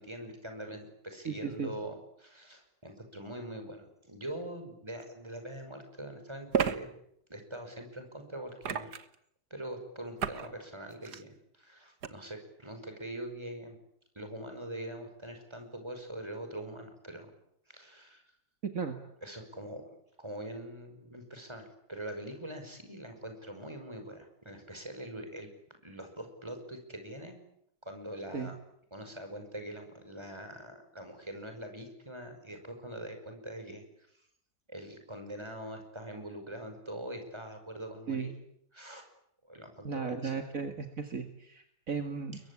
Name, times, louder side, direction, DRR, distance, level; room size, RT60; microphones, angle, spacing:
voice 1, 0.0-6.9 7.3-8.9 9.5-13.8 14.2-17.3 17.7-18.2 19.2-19.9 20.2-25.5 25.8-27.4 27.8-28.6 28.9-33.8 34.1-34.2 34.7-38.3 38.7-39.1 39.4-40.4, right 1 dB, 15° right, 6 dB, 5.7 m, -43 dB
voice 2, 1.3-1.7 18.7-19.0 28.3-28.5 38.1-38.3 39.8-42.4, right 5 dB, 55° right, 6 dB, 2.3 m, -35 dB
sound 1, 5.0-5.1 6.5-6.8 8.6-9.2 10.2-10.5 10.9-11.2 12.0-12.1, right 7 dB, 75° right, 1.9 m, -31 dB
29.5 x 22.5 x 8.5 m, 0.73 s
omnidirectional pair, 1.7 m